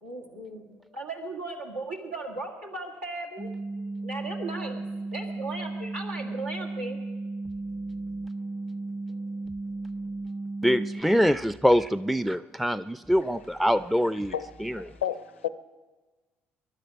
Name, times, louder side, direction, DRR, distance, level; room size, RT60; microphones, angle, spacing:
voice 1, 0.0-3.5 4.0-4.9 5.1-7.0, right 2 dB, 90° right, 0 dB, 1.8 m, -37 dB
sound 1, 3.4-11.0, right 2 dB, 30° right, 1.1 m, -35 dB
voice 2, 10.6-14.3, equal, ahead, 14 dB, 0.4 m, -24 dB
voice 3, 14.3-15.5, left 10 dB, 90° left, 15 dB, 0.5 m, -33 dB
22.5 x 11.5 x 5.3 m, 1.3 s
hypercardioid pair, 50°, 6 cm